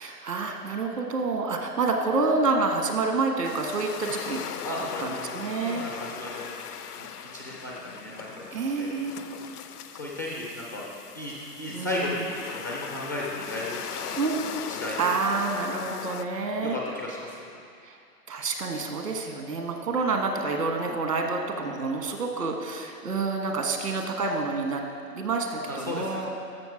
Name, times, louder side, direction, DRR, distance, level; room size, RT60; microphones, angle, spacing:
voice 1, 0.0-4.5 5.0-5.8 8.5-9.6 11.7-12.1 14.1-14.5 14.9-16.8 17.8-18.0 18.3-24.8 25.1-26.3, right 3 dB, 75° right, 3 dB, 1.6 m, -28 dB
sound 1, 3.4-16.3, left 8 dB, 70° left, 0.7 m, -39 dB
voice 2, 4.6-6.5 7.0-8.9 9.9-10.9 11.1-14.1 14.7-15.1 16.6-17.4 25.7-26.3, left 1 dB, 15° left, -4 dB, 0.4 m, -35 dB
13.5 x 5.9 x 4.8 m, 2.3 s
figure-of-eight pair, 120°, 48 cm